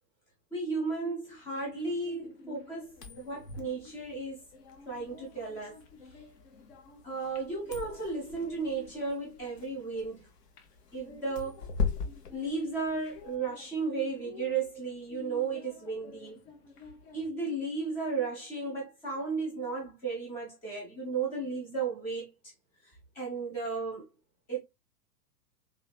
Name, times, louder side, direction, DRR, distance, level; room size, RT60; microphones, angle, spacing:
voice 1, 0.5-4.4 4.9-5.8 7.0-10.2 10.9-11.6 12.3-16.4 17.1-22.3 22.8-24.0 24.5-24.6, right 4 dB, 5° left, 0.3 m, -34 dB
sound 1, 1.3-17.3, left 5 dB, 40° left, 0.8 m, -53 dB
sound 2, 2.9-13.4, left 5 dB, 70° left, 1.1 m, -40 dB
3.5 x 3.1 x 2.2 m
figure-of-eight pair, 105°, 49 cm